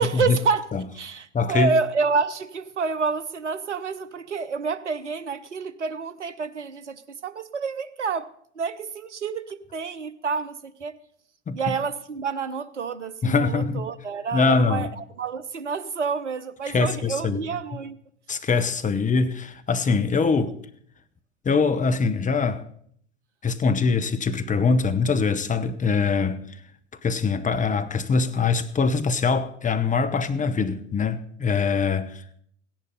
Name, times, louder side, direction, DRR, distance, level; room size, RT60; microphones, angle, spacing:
voice 1, 0.0-0.7 0.9-8.3 8.6-11.0 11.5-18.0 20.2-20.3, right 5 dB, 90° right, 0.8 m, -28 dB
voice 2, 1.3-1.7 11.5-11.6 13.2-13.9 14.3-14.9 16.7-17.4 18.3-20.5 21.4-22.6 23.4-26.4 27.0-32.2, left 4 dB, 20° left, 1.1 m, -23 dB
16.0 x 10.5 x 5.4 m
figure-of-eight pair, 75°, 35 cm